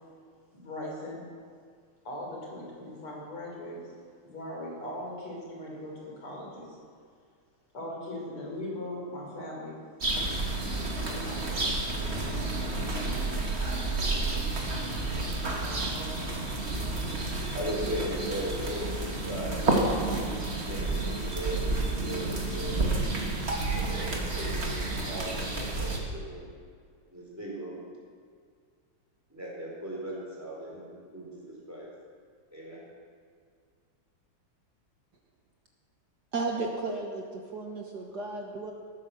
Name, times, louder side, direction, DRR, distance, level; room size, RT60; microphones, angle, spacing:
voice 1, 0.5-1.2 2.0-3.8 4.2-6.8 7.7-9.7 11.1-11.7 12.1-13.3, left 1 dB, 75° left, -2 dB, 4.7 m, -40 dB
sound 1, 10.0-26.0, right 2 dB, 30° right, 1.9 m, -30 dB
voice 2, 17.5-22.9 23.7-26.5 27.1-27.8 29.3-31.9 32.5-32.8, equal, 5° right, -4 dB, 4.4 m, -38 dB
voice 3, 36.3-38.7, right 3 dB, 55° right, 1 dB, 1.6 m, -34 dB
18.5 x 9.3 x 6.7 m, 2.1 s
omnidirectional pair, 2.4 m